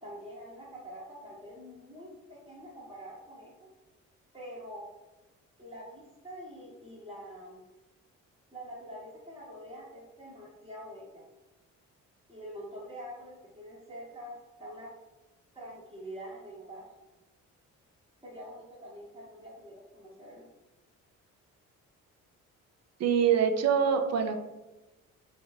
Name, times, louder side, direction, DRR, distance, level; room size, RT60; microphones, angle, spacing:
voice 1, 0.0-3.7 4.3-4.9 5.6-7.6 8.5-11.2 12.3-14.9 15.5-16.9 18.2-20.5, equal, 10° right, -8 dB, 0.9 m, -45 dB
voice 2, 23.0-24.3, right 7 dB, 45° right, 5 dB, 0.4 m, -24 dB
2.4 x 2.1 x 3.2 m, 1.1 s
hypercardioid pair, 50°, 39 cm